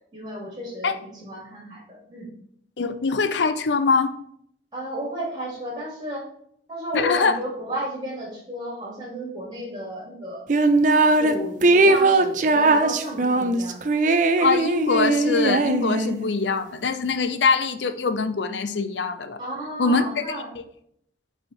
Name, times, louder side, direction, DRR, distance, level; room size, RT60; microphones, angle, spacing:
voice 1, 0.1-2.3 4.7-6.3 6.7-10.5 11.2-13.8 19.4-20.5, equal, 25° right, -3 dB, 2.7 m, -33 dB
voice 2, 2.8-4.1 6.9-7.3 14.4-19.4 19.8-20.4, left 4 dB, 90° left, 10 dB, 0.6 m, -23 dB
sound 1, 10.5-11.3 11.6-16.3, right 2 dB, 45° right, 0.5 m, -19 dB
8.5 x 3.5 x 4.4 m, 0.69 s
head